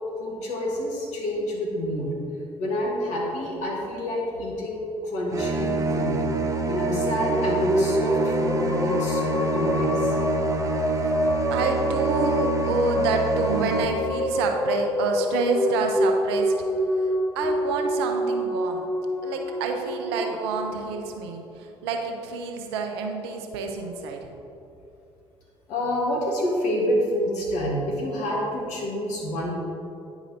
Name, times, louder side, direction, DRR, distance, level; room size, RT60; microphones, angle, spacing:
voice 1, 0.2-2.1 2.6-6.2 6.7-10.2 11.3-11.4 20.1-20.3 25.7-29.5, equal, 60° left, -2 dB, 1.6 m, -28 dB
sound 1, 5.3-13.8, right 2 dB, 25° right, 0.6 m, -26 dB
sound 2, 6.9-21.4, left 1 dB, 15° left, 0.5 m, -27 dB
voice 2, 11.5-16.5 17.0-18.8 19.2-24.3, right 4 dB, 75° right, 3 dB, 0.7 m, -28 dB
9.5 x 4.9 x 2.8 m, 2.7 s
figure-of-eight pair, 55°, 14 cm